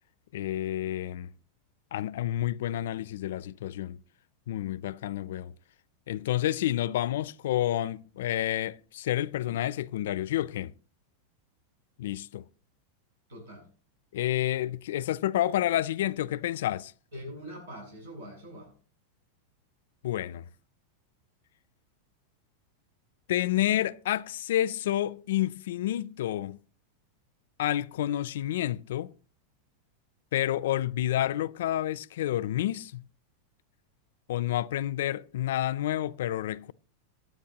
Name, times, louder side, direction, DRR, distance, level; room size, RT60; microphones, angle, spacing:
voice 1, 0.3-1.3 1.9-4.0 4.5-5.5 6.1-10.7 12.0-12.5 14.1-16.9 20.0-20.5 23.3-26.6 27.6-29.1 30.3-33.1 34.3-36.7, left 13 dB, 75° left, 0.4 m, -29 dB
voice 2, 13.3-13.7 17.1-18.7, equal, 85° right, 7.3 m, -43 dB
16.0 x 9.6 x 2.9 m
supercardioid pair, 130°, 0 cm